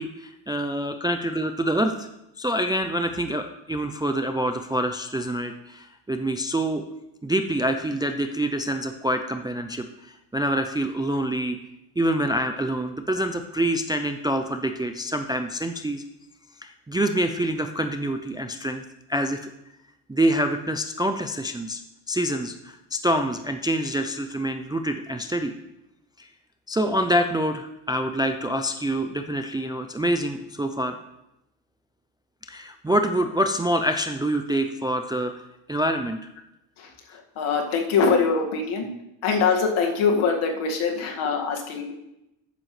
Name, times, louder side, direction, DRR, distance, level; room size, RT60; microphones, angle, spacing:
voice 1, 0.0-2.1 2.4-6.8 7.2-11.6 12.0-16.0 16.6-18.8 19.1-19.4 20.1-21.8 22.1-25.5 26.2-26.3 26.7-31.0 32.5-35.3 35.7-36.2, right 1 dB, 10° right, 6 dB, 0.3 m, -26 dB
voice 2, 37.4-38.9 39.2-41.9, left 5 dB, 75° left, 1 dB, 2.1 m, -23 dB
12.0 x 9.1 x 3.2 m, 0.87 s
cardioid pair, 130°, 49 cm